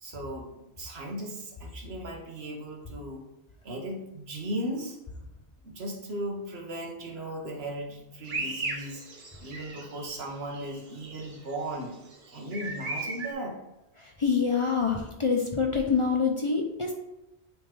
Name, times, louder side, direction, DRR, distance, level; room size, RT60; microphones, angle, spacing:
voice 1, 0.0-3.3 3.6-5.0 5.6-9.0 9.4-11.9 12.3-13.6, right 1 dB, 75° right, 2 dB, 1.3 m, -37 dB
sound 1, 8.3-10.2 10.5-13.3, right 3 dB, 55° right, 1.0 m, -37 dB
voice 2, 14.0-16.9, left 5 dB, 35° left, 2 dB, 0.6 m, -26 dB
8.9 x 3.5 x 3.3 m, 0.93 s
omnidirectional pair, 1.1 m